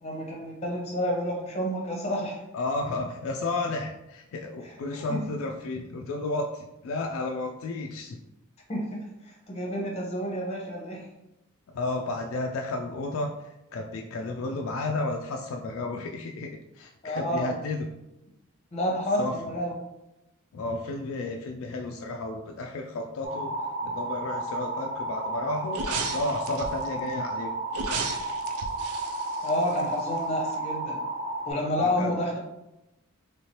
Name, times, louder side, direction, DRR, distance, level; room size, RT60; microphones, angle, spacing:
voice 1, 0.0-2.4 4.6-4.7 5.1-5.2 8.7-11.1 17.0-17.5 18.7-19.7 29.4-31.0 31.5-32.4, equal, 30° left, -1 dB, 0.8 m, -29 dB
voice 2, 2.5-8.2 11.7-17.9 19.2-19.6 20.5-23.6 23.8-27.5 31.8-32.1, left 2 dB, 65° left, 2 dB, 0.3 m, -32 dB
sound 1, 23.2-31.5, right 2 dB, 30° right, 0.8 m, -32 dB
sound 2, 25.7-26.9 27.7-30.2 30.5-30.6, right 4 dB, 90° right, 0.4 m, -34 dB
3.3 x 3.1 x 2.8 m, 0.90 s
head